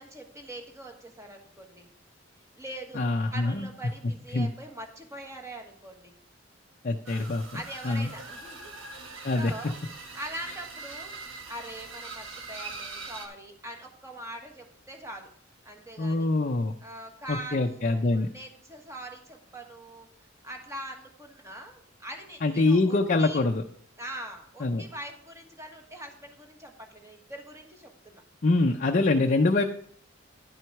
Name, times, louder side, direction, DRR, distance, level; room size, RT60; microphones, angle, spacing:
voice 1, 0.0-1.9 2.6-3.0 3.3-6.1 7.5-9.7 10.1-11.1 11.5-15.3 15.6-16.3 16.8-20.1 20.4-23.4 24.0-28.2, right 1 dB, 15° right, 3 dB, 1.3 m, -42 dB
voice 2, 3.0-3.7 4.3-4.5 6.8-8.1 9.2-9.7 16.0-16.7 17.3-18.3 22.4-23.6 24.6-24.8 28.4-29.6, left 2 dB, 40° left, 3 dB, 0.5 m, -25 dB
sound 1, 7.1-13.3, right 3 dB, 75° right, 1.3 m, -42 dB
10.5 x 6.1 x 4.6 m, 0.63 s
head